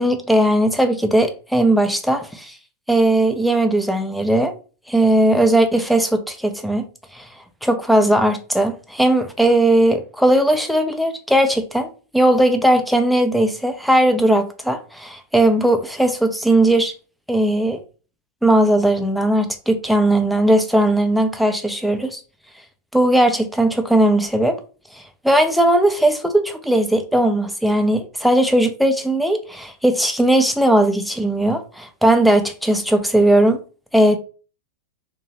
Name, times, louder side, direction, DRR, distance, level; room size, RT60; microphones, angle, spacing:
voice 1, 0.0-2.5 2.9-4.5 4.9-6.8 7.1-7.3 7.6-16.9 17.3-17.8 18.4-22.2 22.9-24.6 25.2-33.6 33.9-34.2, right 1 dB, ahead, 0.4 m, -18 dB
2.7 x 2.2 x 2.7 m
figure-of-eight pair, 90°, 0 cm